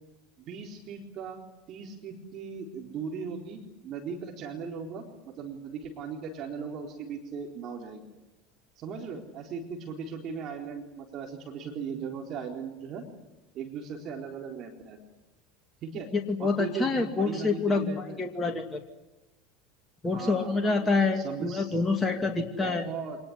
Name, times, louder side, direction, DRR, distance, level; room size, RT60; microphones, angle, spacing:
voice 1, 0.4-1.4 1.7-8.1 8.8-13.0 13.5-15.0 15.8-16.1 16.4-18.2 20.1-21.8 22.6-23.2, right 6 dB, 45° right, 2 dB, 4.1 m, -38 dB
voice 2, 16.1-18.8 20.0-22.9, left 3 dB, 20° left, 4 dB, 2.6 m, -27 dB
26.0 x 20.0 x 10.0 m, 1.1 s
hypercardioid pair, 80°, 0 cm